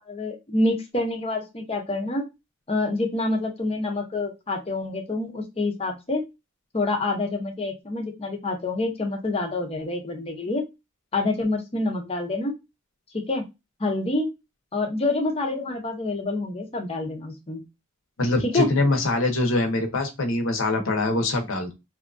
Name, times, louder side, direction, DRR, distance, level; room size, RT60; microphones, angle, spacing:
voice 1, 0.1-2.3 2.7-6.2 6.7-10.6 11.1-12.5 13.1-13.4 13.8-14.3 14.7-17.6 18.4-18.7, left 2 dB, 30° left, 2 dB, 0.7 m, -27 dB
voice 2, 18.2-21.7, left 2 dB, 65° left, 3 dB, 0.8 m, -23 dB
2.7 x 2.4 x 2.5 m, 0.23 s
head